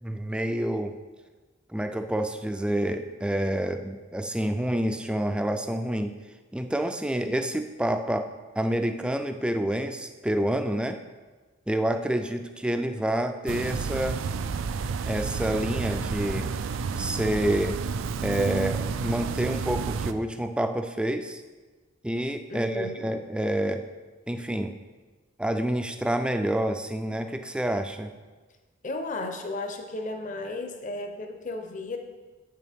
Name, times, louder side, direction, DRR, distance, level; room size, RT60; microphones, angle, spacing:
voice 1, 0.0-0.9 1.7-6.1 6.5-8.3 8.6-11.0 11.7-14.2 15.1-16.5 17.0-17.8 18.2-21.4 22.0-23.8 24.3-24.8 25.4-28.1, right 1 dB, 5° right, 7 dB, 0.3 m, -28 dB
sound 1, 13.5-20.1, right 5 dB, 80° right, 0.4 m, -30 dB
voice 2, 22.5-23.1 28.8-32.0, left 2 dB, 40° left, 5 dB, 0.7 m, -34 dB
8.1 x 6.8 x 3.5 m, 1.3 s
head